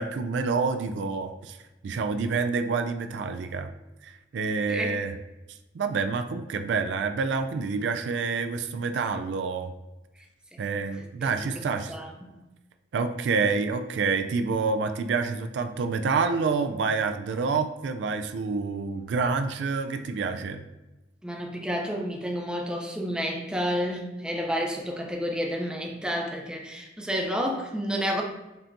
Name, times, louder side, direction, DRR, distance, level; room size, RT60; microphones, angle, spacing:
voice 1, 0.0-1.6 1.8-3.7 4.0-5.1 5.7-9.7 10.6-11.9 12.9-20.6, right 4 dB, 75° right, 8 dB, 0.3 m, -28 dB
voice 2, 4.7-5.0 10.5-10.6 11.0-11.6 11.9-12.3 21.2-28.2, equal, 5° right, 1 dB, 0.5 m, -30 dB
5.3 x 2.9 x 2.6 m, 1.1 s
head